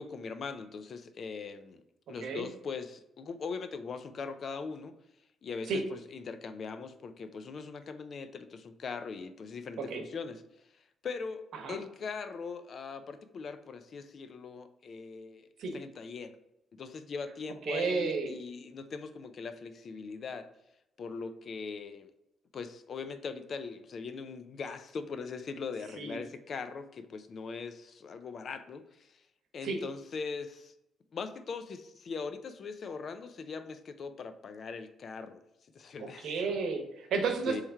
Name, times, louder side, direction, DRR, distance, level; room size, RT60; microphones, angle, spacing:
voice 1, 0.0-1.8 2.1-4.9 5.4-10.4 11.0-16.3 16.7-20.5 21.0-22.1 22.5-29.2 29.5-30.7 31.1-35.4 35.7-36.5 37.5-37.6, left 5 dB, 55° left, 10 dB, 0.4 m, -40 dB
voice 2, 17.7-18.3 26.0-26.2 29.6-29.8 36.0-37.6, right 4 dB, 70° right, 4 dB, 0.9 m, -32 dB
3.5 x 3.2 x 4.3 m, 0.85 s
cardioid pair, 90°, 0 cm